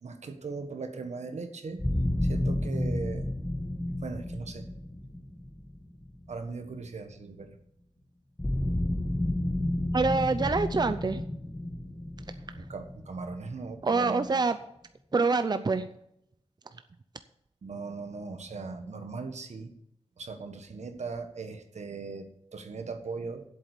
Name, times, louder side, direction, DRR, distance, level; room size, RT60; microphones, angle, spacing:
voice 1, 0.0-1.9 2.2-3.3 4.0-4.7 6.3-7.6 12.5-14.3 17.6-19.7 20.2-23.4, right 4 dB, 85° right, 7 dB, 1.4 m, -39 dB
sound 1, 1.8-6.7 8.4-14.0, left 1 dB, 15° left, 1.4 m, -31 dB
voice 2, 9.9-11.2 13.8-14.6 15.1-15.9, right 4 dB, 40° right, 10 dB, 0.6 m, -25 dB
8.0 x 7.7 x 8.2 m, 0.77 s
wide cardioid pair, 95°, 11 cm